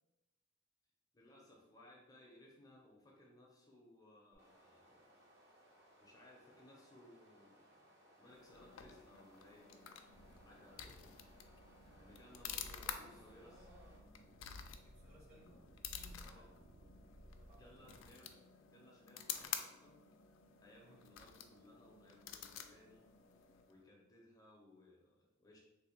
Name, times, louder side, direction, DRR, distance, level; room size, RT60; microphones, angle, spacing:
voice 1, 1.1-5.0 6.0-7.9 8.2-10.0 10.4-11.5 12.0-13.7 16.2-16.5 17.5-18.4 18.6-20.0 20.6-23.0 23.6-25.6, left 1 dB, 20° left, -2 dB, 0.6 m, -62 dB
sound 1, 4.3-14.0, equal, 60° right, 0.9 m, -66 dB
sound 2, 8.3-23.8, left 8 dB, 70° left, 0.3 m, -50 dB
sound 3, 10.1-18.1, right 1 dB, 75° right, 0.4 m, -63 dB
voice 2, 12.8-14.1 14.6-16.6 17.4-18.0 20.8-21.0, equal, 35° right, -2 dB, 0.9 m, -64 dB
3.2 x 2.2 x 4.3 m, 0.99 s
head